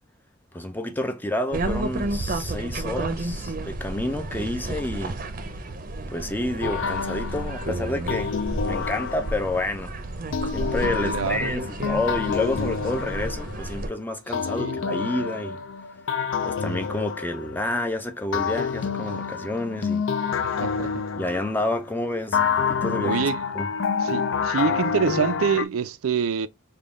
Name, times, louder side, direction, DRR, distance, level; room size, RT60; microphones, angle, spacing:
voice 1, 0.5-5.1 6.1-9.9 10.5-15.6 16.4-20.0 20.3-20.5 21.2-23.7, left 1 dB, 10° left, 0.4 m, -29 dB
sound 1, 1.5-13.9, right 2 dB, 40° right, 0.6 m, -31 dB
sound 2, 6.6-9.7 10.3-13.9 14.3-17.8 18.3-21.8 22.3-25.6, left 6 dB, 70° left, 0.4 m, -28 dB
voice 2, 11.0-11.5 14.6-14.8 20.4-21.1 23.0-23.4 24.0-26.5, right 6 dB, 90° right, 0.4 m, -26 dB
3.6 x 2.2 x 3.5 m
head